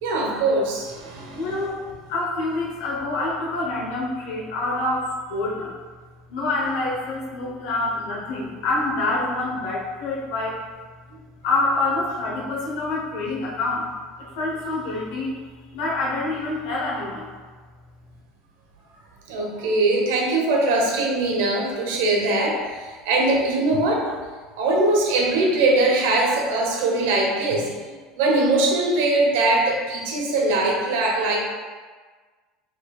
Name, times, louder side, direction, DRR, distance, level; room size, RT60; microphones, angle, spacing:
voice 1, 0.0-1.6 8.4-8.5 19.3-24.2 24.5-27.7 28.2-31.4, right 2 dB, 80° right, -1 dB, 1.0 m, -21 dB
voice 2, 1.3-1.8 2.1-5.7 6.3-10.6 11.4-13.9 14.4-15.4 15.7-17.3, left 2 dB, 70° left, -4 dB, 1.0 m, -26 dB
5.3 x 3.7 x 2.4 m, 1.4 s
cardioid pair, 180°, 0 cm